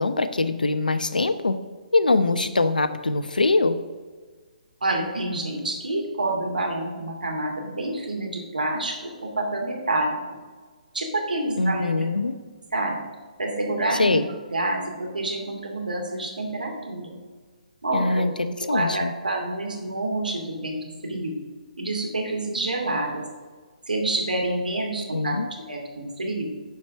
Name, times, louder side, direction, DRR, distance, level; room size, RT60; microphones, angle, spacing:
voice 1, 0.0-1.6 1.9-3.8 11.6-12.4 14.0-14.2 17.9-19.1 25.1-25.5, left 3 dB, 85° left, 11 dB, 0.8 m, -23 dB
voice 2, 4.8-10.2 10.9-12.0 12.7-13.0 13.4-14.2 14.5-17.1 17.8-18.2 18.7-21.3 21.8-23.2 23.9-25.4 25.7-26.5, right 2 dB, 85° right, 1 dB, 2.5 m, -28 dB
10.5 x 4.9 x 6.4 m, 1.4 s
figure-of-eight pair, 140°, 4 cm